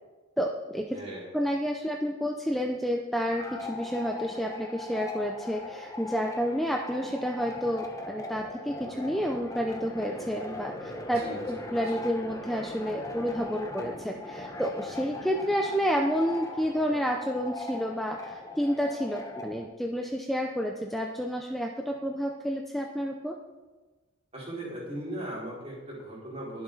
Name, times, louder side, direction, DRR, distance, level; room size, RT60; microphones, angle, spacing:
voice 1, 0.4-1.0 1.3-23.4, equal, ahead, 1 dB, 0.6 m, -30 dB
voice 2, 0.9-1.3 11.0-12.0 24.3-26.6, right 1 dB, 30° right, -6 dB, 4.7 m, -39 dB
sound 1, 3.3-19.6, left 2 dB, 15° left, 1.2 m, -40 dB
21.5 x 7.3 x 4.0 m, 1.3 s
head